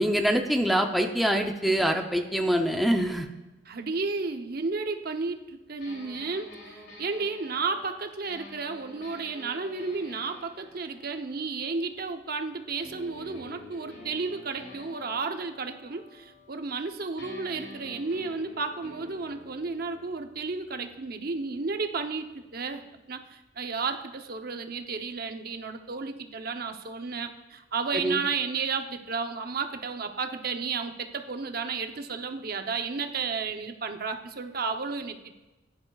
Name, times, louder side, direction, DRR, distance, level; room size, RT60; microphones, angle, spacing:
voice 1, 0.0-3.3 27.9-28.2, equal, ahead, 3 dB, 0.6 m, -25 dB
voice 2, 3.7-22.8 23.1-35.4, right 4 dB, 50° right, 6 dB, 0.8 m, -33 dB
sound 1, 5.8-12.3 12.8-16.9 17.2-22.9, left 1 dB, 70° left, 3.0 m, -49 dB
15.5 x 10.5 x 2.4 m, 1.1 s
head